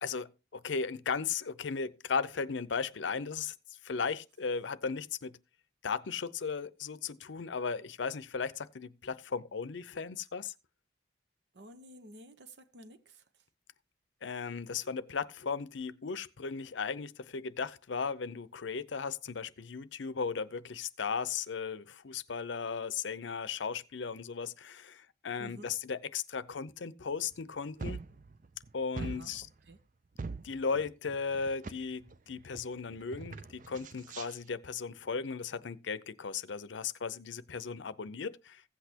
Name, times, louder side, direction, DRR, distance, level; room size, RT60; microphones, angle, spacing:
voice 1, 0.0-3.5 3.8-5.4 5.8-10.5 14.2-28.0 28.7-29.5 30.4-38.6, left 5 dB, 85° left, 0.6 m, -36 dB
voice 2, 11.5-13.2 25.4-25.7 29.0-29.4 29.7-29.8, right 1 dB, 70° right, 1.0 m, -51 dB
sound 1, 27.3-27.4 27.8-28.7 29.0-29.7 30.2-31.8 32.1-32.7 32.9-34.3, right 4 dB, 45° right, 0.5 m, -42 dB
15.5 x 8.1 x 2.8 m
head